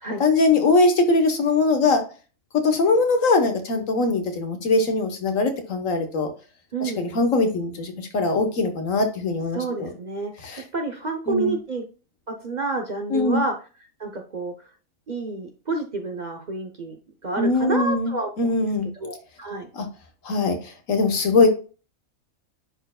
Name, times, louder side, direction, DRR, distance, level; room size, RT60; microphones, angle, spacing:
voice 1, 0.2-2.0 2.6-6.3 6.8-9.9 10.4-10.6 11.3-11.5 13.1-13.4 17.4-18.9 19.7-19.9 20.2-21.5, left 3 dB, 75° left, 6 dB, 1.6 m, -21 dB
voice 2, 6.7-7.1 9.5-10.3 10.7-11.8 12.4-13.5 14.0-14.5 15.1-16.9 17.2-18.3 19.0-19.7, right 3 dB, 40° right, 4 dB, 0.7 m, -28 dB
9.9 x 4.5 x 2.3 m, 0.36 s
omnidirectional pair, 1.4 m